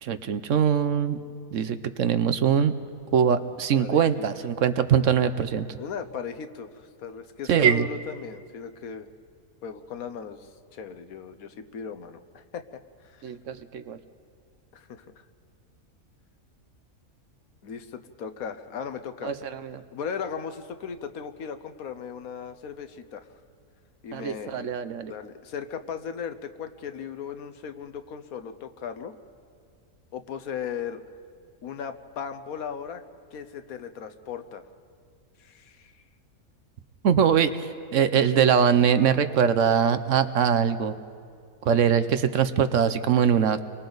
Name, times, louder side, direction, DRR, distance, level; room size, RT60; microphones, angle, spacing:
voice 1, 0.0-1.2 1.5-2.8 3.1-5.8 7.5-7.9 13.2-14.0 19.2-19.8 24.1-25.1 37.0-40.9 41.7-43.6, right 7 dB, 65° right, 11 dB, 1.0 m, -22 dB
voice 2, 3.8-4.3 5.8-9.1 9.6-12.6 13.0-13.2 14.7-15.1 17.6-19.3 19.9-23.2 24.0-24.7 25.1-29.1 30.1-31.0 31.6-33.0 33.3-34.6 35.4-36.0, left 7 dB, 80° left, 9 dB, 1.4 m, -37 dB
29.5 x 23.5 x 4.0 m, 2.2 s
omnidirectional pair, 1.5 m